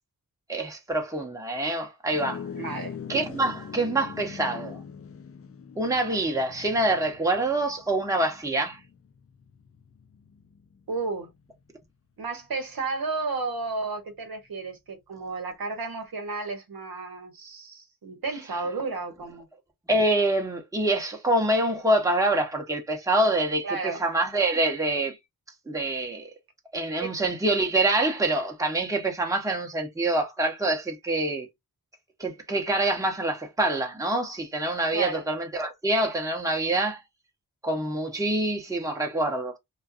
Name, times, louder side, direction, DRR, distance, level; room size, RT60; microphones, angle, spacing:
voice 1, 0.5-2.4 3.1-4.8 5.8-8.8 19.9-25.2 25.7-26.3 26.7-31.5 32.2-37.0 37.6-39.6, right 2 dB, 10° right, 0.8 m, -26 dB
sound 1, 2.1-11.7, left 7 dB, 40° left, 0.5 m, -43 dB
voice 2, 2.5-3.0 10.9-11.3 12.2-19.5 23.6-24.0 27.0-27.2 34.9-35.2, right 3 dB, 70° right, 0.9 m, -32 dB
2.5 x 2.3 x 2.4 m
cardioid pair, 55°, 37 cm